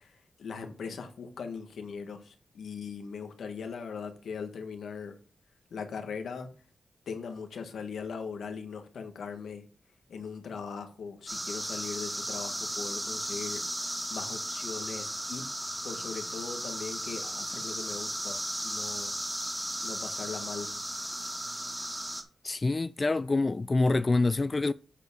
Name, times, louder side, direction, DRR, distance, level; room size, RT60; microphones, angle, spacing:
voice 1, 0.0-5.2 5.7-6.5 7.1-9.6 10.1-13.6 14.1-15.5 15.8-19.1 19.8-20.7, left 5 dB, 85° left, 1.5 m, -40 dB
sound 1, 11.3-22.2, right 1 dB, 10° right, 2.2 m, -35 dB
voice 2, 22.4-24.7, left 3 dB, 35° left, 0.3 m, -26 dB
8.1 x 4.3 x 6.9 m
cardioid pair, 60°, 0 cm